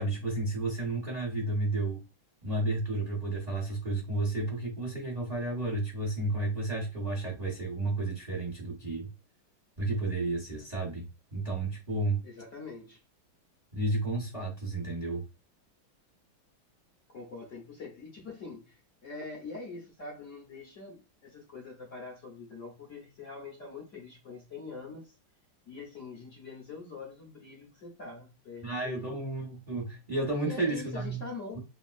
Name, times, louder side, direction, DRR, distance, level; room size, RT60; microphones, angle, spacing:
voice 1, 0.0-2.0 2.4-9.1 9.8-12.2 13.7-15.2 28.6-31.2, right 2 dB, 75° right, 0.3 m, -32 dB
voice 2, 12.2-13.0 17.1-25.2 25.7-29.2 30.3-31.6, left 4 dB, 60° left, 0.8 m, -44 dB
3.4 x 2.3 x 2.4 m
omnidirectional pair, 2.3 m